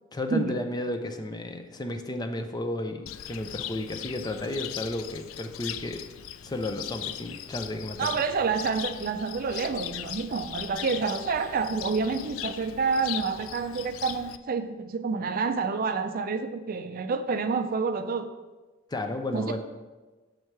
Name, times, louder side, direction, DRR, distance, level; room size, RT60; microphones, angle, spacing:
voice 1, 0.1-6.1 6.4-8.1 18.9-19.6, left 1 dB, 20° left, 6 dB, 0.5 m, -33 dB
Cricket, 3.1-14.4, left 11 dB, 85° left, 0.3 m, -39 dB
voice 2, 8.0-18.3 19.3-19.6, right 5 dB, 45° right, 9 dB, 0.4 m, -28 dB
6.6 x 4.6 x 4.6 m, 1.2 s
head